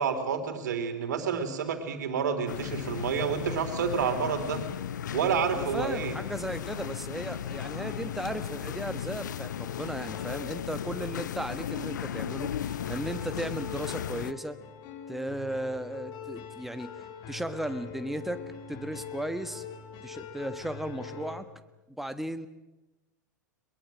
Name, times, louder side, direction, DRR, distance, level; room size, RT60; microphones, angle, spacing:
voice 1, 0.0-4.6 5.1-6.1, right 6 dB, 65° right, 7 dB, 3.5 m, -29 dB
sound 1, 2.5-14.3, left 9 dB, 70° left, 0.7 m, -36 dB
voice 2, 5.5-14.6 15.1-16.9 17.3-18.4 18.7-19.6 20.0-21.5 21.9-22.5, right 1 dB, ahead, 10 dB, 1.5 m, -36 dB
sound 2, 6.0-21.4, left 7 dB, 45° left, 3.2 m, -45 dB
22.5 x 22.0 x 7.7 m, 1.0 s
figure-of-eight pair, 90°, 10 cm